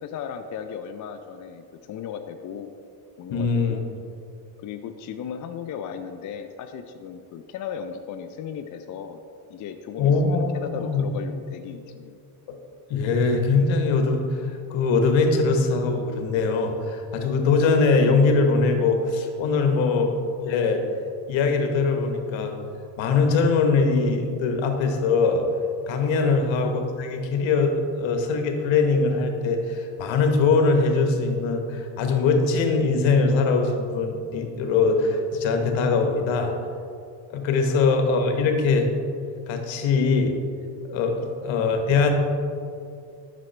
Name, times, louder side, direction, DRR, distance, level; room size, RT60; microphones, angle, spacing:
voice 1, 0.0-2.7 3.2-3.8 4.6-9.2 9.5-12.2 26.2-26.5 37.6-37.8 41.2-41.3, left 7 dB, 40° left, 7 dB, 0.4 m, -36 dB
voice 2, 3.3-3.8 10.0-11.0 12.5-12.6 12.9-20.8 21.3-22.5 23.0-25.5 25.9-36.5 37.3-38.9 39.5-40.4 40.9-42.1, left 4 dB, 65° left, 4 dB, 1.1 m, -22 dB
7.5 x 6.1 x 3.2 m, 2.4 s
supercardioid pair, 75°, 50 cm